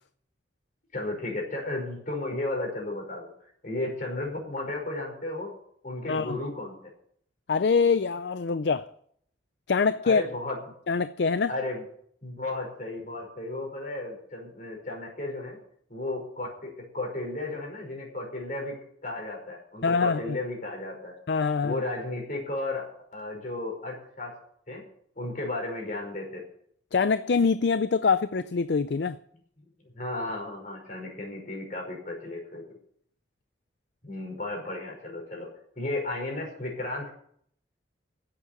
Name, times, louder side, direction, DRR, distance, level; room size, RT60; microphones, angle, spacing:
voice 1, 0.9-3.3 3.6-5.6 5.8-6.8 10.0-10.6 11.5-11.8 12.2-15.6 15.9-21.1 21.6-24.3 24.7-24.8 25.2-26.4 29.8-32.6 34.0-35.5 35.8-37.1, left 2 dB, 45° left, 5.2 m, -34 dB
voice 2, 7.5-8.8 9.7-10.2 10.9-11.5 19.8-20.4 21.3-21.8 26.9-29.2, left 5 dB, 60° left, 0.4 m, -24 dB
10.5 x 8.5 x 9.7 m
head